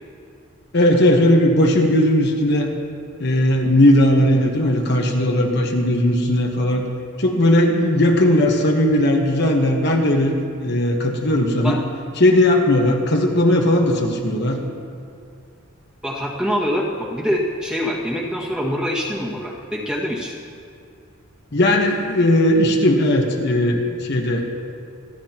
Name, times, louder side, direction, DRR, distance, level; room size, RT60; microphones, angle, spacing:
voice 1, 0.7-2.7 3.2-6.8 7.2-10.3 10.6-11.8 12.2-14.6 21.5-24.5, left 1 dB, 50° left, 1 dB, 1.2 m, -17 dB
voice 2, 16.0-20.3, equal, 5° right, -4 dB, 1.8 m, -24 dB
27.0 x 11.5 x 3.0 m, 2.5 s
head